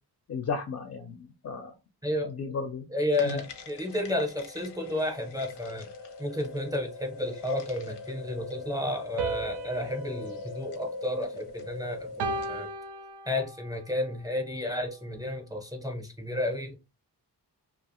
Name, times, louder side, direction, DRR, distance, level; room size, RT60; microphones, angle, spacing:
voice 1, 0.3-1.7 2.2-2.8 3.2-3.4, left 5 dB, 40° left, 0.4 m, -34 dB
voice 2, 2.0-2.3 2.9-5.9 6.2-12.7 13.3-16.8, left 1 dB, 10° right, 0.6 m, -32 dB
sound 1, 3.1-12.6, left 3 dB, 90° left, 0.7 m, -42 dB
sound 2, 9.2-11.6 12.2-13.7, right 4 dB, 80° right, 0.5 m, -36 dB
2.4 x 2.3 x 2.9 m
wide cardioid pair, 110°, 40 cm